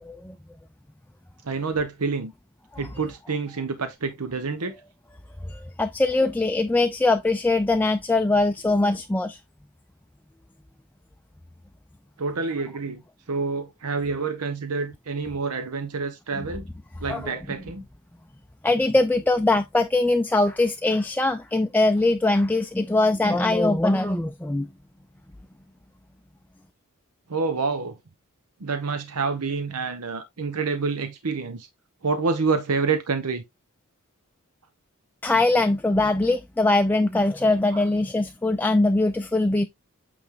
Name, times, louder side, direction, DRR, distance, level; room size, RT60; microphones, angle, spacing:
voice 1, 0.0-0.3 2.7-2.8 5.5-9.4 17.1-17.3 18.6-24.7 35.2-39.7, left 2 dB, 10° left, 0.4 m, -22 dB
voice 2, 1.4-2.3 2.8-4.7 12.2-13.0 13.3-16.6 17.0-17.8 27.3-28.0 28.6-31.7 32.0-33.4 37.7-37.8, right 4 dB, 90° right, 0.9 m, -27 dB
8.6 x 3.3 x 3.7 m
head